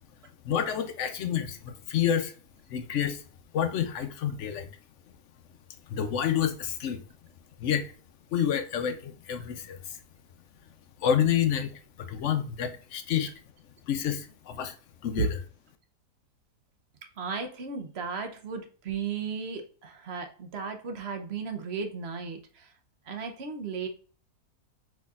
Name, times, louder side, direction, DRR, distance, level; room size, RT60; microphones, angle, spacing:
voice 1, 0.4-2.3 2.7-3.2 3.5-4.7 5.9-7.0 7.6-7.9 8.3-10.0 11.0-11.7 12.0-13.3 13.9-14.8 15.0-15.3, left 9 dB, 65° left, 0.8 m, -28 dB
voice 2, 17.2-22.7 23.0-23.9, right 5 dB, 50° right, 0.8 m, -34 dB
4.8 x 4.1 x 2.3 m
omnidirectional pair, 1.7 m